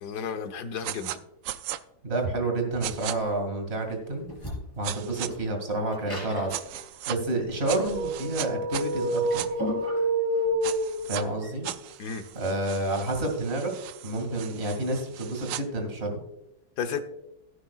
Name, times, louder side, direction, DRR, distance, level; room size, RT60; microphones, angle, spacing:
voice 1, 0.0-1.2 12.0-12.2 16.8-17.0, left 6 dB, 60° left, 8 dB, 1.4 m, -32 dB
sound 1, 0.8-1.2 1.4-1.8 2.8-3.1 4.8-5.3 6.5-7.2 7.7-9.5 10.6-11.2 11.6-15.6, right 12 dB, 75° right, 1.2 m, -37 dB
voice 2, 2.0-4.3 4.8-6.6 7.1-9.4 11.1-11.7 12.3-13.7 14.0-16.2, right 2 dB, 30° right, 3 dB, 2.4 m, -29 dB
sound 2, 3.2-13.2, equal, 10° left, 4.4 m, -40 dB
sound 3, 7.8-11.4, right 1 dB, 55° right, 1.1 m, -28 dB
16.5 x 9.3 x 2.4 m, 0.82 s
omnidirectional pair, 2.2 m